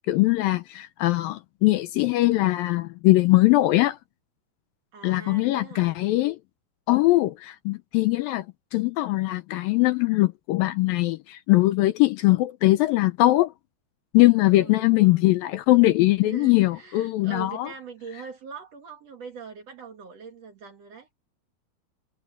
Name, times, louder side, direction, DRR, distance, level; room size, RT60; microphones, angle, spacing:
voice 1, 0.1-4.0 5.0-6.4 6.9-8.5 8.7-13.5 14.1-17.7, left 18 dB, 80° left, 2.2 m, -21 dB
voice 2, 4.9-6.0 14.4-15.3 16.2-21.1, right 6 dB, 50° right, 2.5 m, -42 dB
omnidirectional pair, 4.5 m